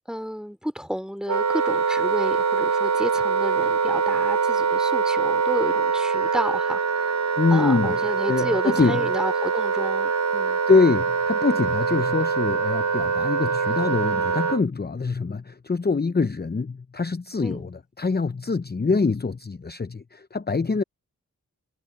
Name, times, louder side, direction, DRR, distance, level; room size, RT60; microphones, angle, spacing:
voice 1, 0.1-7.2 7.5-10.6 17.4-17.7, equal, ahead, 3.2 m, -31 dB
Wind instrument woodwind instrument, 1.3-14.6, right 5 dB, 55° right, 1.0 m, -24 dB
voice 2, 7.4-9.1 10.7-20.8, left 4 dB, 30° left, 0.7 m, -24 dB
cardioid pair, 40°, 33 cm